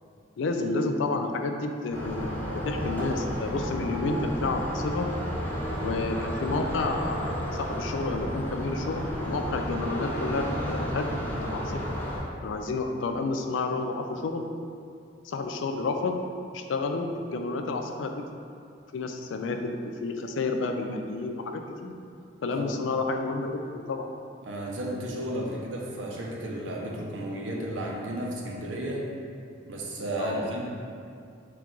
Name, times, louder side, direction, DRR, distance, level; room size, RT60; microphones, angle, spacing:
voice 1, 0.4-5.1 5.8-11.8 12.4-14.5 15.2-16.2 16.5-18.1 18.9-19.7 20.0-21.9 22.4-24.1 30.2-30.4, left 3 dB, 85° left, 5 dB, 0.4 m, -30 dB
sound 1, 1.9-12.2, equal, 10° left, 0.5 m, -32 dB
voice 2, 24.4-29.1 29.7-30.6, right 1 dB, 90° right, -2 dB, 0.6 m, -33 dB
4.3 x 2.4 x 3.7 m, 2.4 s
head